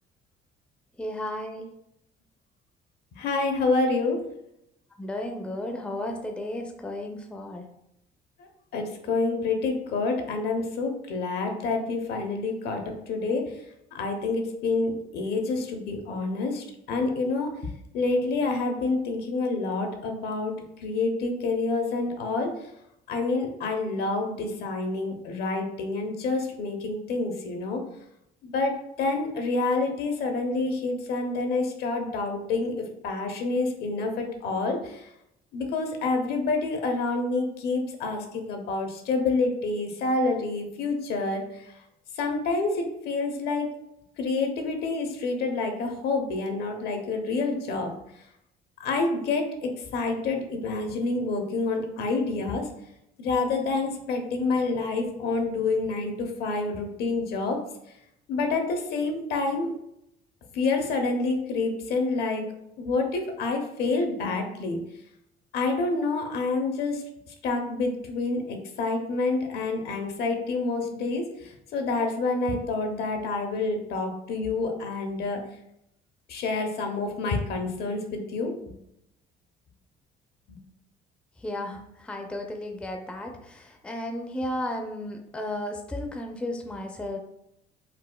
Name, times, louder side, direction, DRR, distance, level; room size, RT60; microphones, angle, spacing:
voice 1, 1.0-1.7 5.0-7.6 81.4-87.2, left 1 dB, 5° left, 3 dB, 0.4 m, -34 dB
voice 2, 3.1-4.2 8.7-13.5 13.9-17.5 17.9-22.5 23.1-27.8 28.4-35.1 35.5-41.4 42.2-43.7 44.2-47.9 48.8-52.7 53.2-57.6 58.3-59.7 60.5-62.5 62.8-64.8 65.5-67.0 67.4-75.4 76.3-78.5 80.5-80.6, left 3 dB, 70° left, 4 dB, 0.6 m, -28 dB
4.0 x 2.4 x 2.2 m, 0.79 s
cardioid pair, 110°, 17 cm